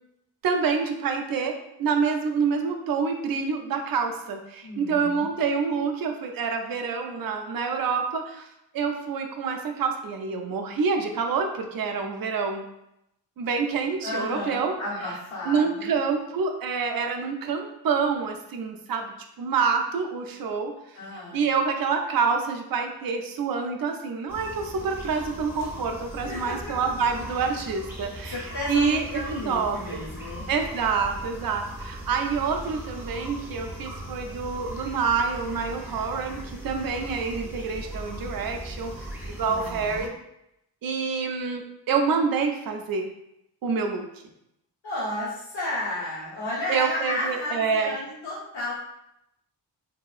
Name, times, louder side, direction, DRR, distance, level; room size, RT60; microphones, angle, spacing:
voice 1, 0.4-8.5 8.7-12.6 13.4-14.7 15.5-20.7 21.3-29.0 29.5-30.0 30.5-40.1 40.8-43.1 43.6-44.1 46.7-47.9, right 5 dB, 50° right, 4 dB, 0.5 m, -27 dB
voice 2, 4.6-5.2 14.0-15.9 20.9-21.4 26.2-26.7 28.3-30.5 39.4-40.1 44.8-48.7, left 1 dB, 85° left, -10 dB, 1.3 m, -33 dB
sound 1, 24.3-40.1, equal, 5° right, 0.5 m, -39 dB
2.8 x 2.3 x 2.4 m, 0.81 s
cardioid pair, 50°, 46 cm